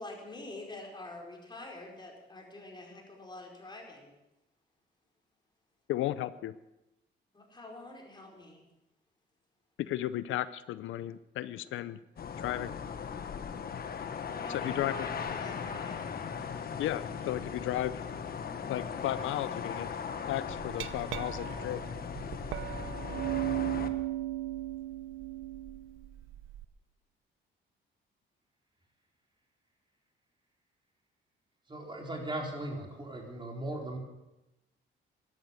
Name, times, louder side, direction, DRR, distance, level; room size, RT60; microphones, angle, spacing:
voice 1, 0.0-4.1 7.3-8.6 14.3-16.1, left 2 dB, 20° left, 0 dB, 4.8 m, -46 dB
voice 2, 5.9-6.6 9.8-12.0 12.4-12.7 14.5-15.1 16.8-18.0 18.7-19.9 20.3-21.8, left 13 dB, 80° left, 16 dB, 0.6 m, -34 dB
sound 1, 12.2-23.9, left 6 dB, 50° left, 1.4 m, -38 dB
Glass, 20.5-26.6, right 15 dB, 85° right, 0.7 m, -36 dB
voice 3, 31.7-34.0, right 1 dB, 25° right, 0 dB, 4.3 m, -38 dB
13.0 x 12.0 x 7.7 m, 0.97 s
cardioid pair, 90°, 20 cm